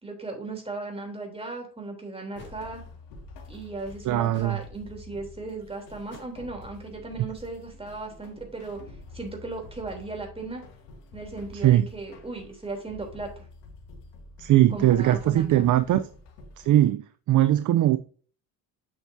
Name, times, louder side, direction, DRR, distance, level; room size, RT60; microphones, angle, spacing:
voice 1, 0.0-2.8 3.5-8.8 9.1-10.6 11.1-13.5 14.7-15.7, right 3 dB, 15° right, 3.4 m, -37 dB
sound 1, 1.4-1.5 2.4-2.6 4.3-4.6 6.1-6.5, left 3 dB, 25° left, 3.5 m, -48 dB
sound 2, 2.4-16.9, left 3 dB, 80° left, 2.3 m, -47 dB
voice 2, 4.1-4.6 11.5-11.9 14.4-16.1 16.6-18.0, right 13 dB, 50° right, 0.6 m, -20 dB
7.7 x 7.3 x 2.7 m
supercardioid pair, 80°, 41 cm